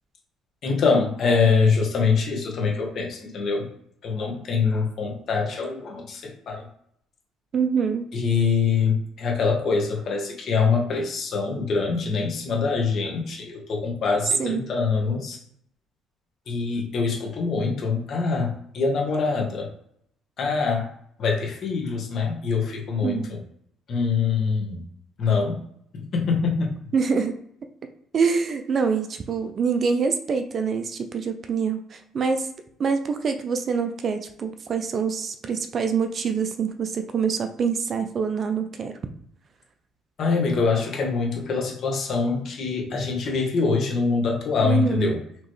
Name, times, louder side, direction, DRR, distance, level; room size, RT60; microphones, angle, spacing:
voice 1, 0.6-3.7 4.0-6.7 8.1-15.4 16.5-19.7 20.4-20.8 21.2-23.4 23.9-24.8 25.2-25.6 25.9-26.7 40.2-45.2, left 5 dB, 50° left, 0 dB, 1.2 m, -24 dB
voice 2, 7.5-8.1 14.4-14.6 23.0-23.3 26.9-27.4 28.1-32.5 32.8-39.0 44.6-45.1, right 5 dB, 45° right, 7 dB, 0.5 m, -25 dB
4.5 x 3.0 x 3.1 m, 0.68 s
cardioid pair, 110°, 0 cm